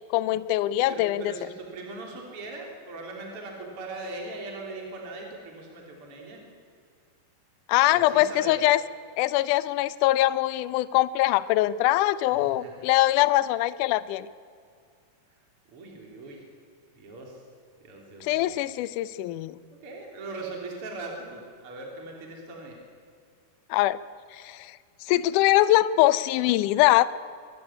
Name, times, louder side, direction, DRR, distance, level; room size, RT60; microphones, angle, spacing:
voice 1, 0.1-1.2 7.7-8.8 9.2-14.3 18.2-19.6 23.7-24.0 24.3-24.8 25.0-27.1, left 16 dB, 85° left, 16 dB, 1.8 m, -22 dB
voice 2, 0.9-6.4 7.9-8.6 12.3-12.9 15.7-16.4 16.9-17.4 17.8-18.5 19.8-22.8, right 2 dB, 35° right, 0 dB, 4.1 m, -40 dB
24.5 x 14.0 x 9.9 m, 2.2 s
omnidirectional pair, 4.5 m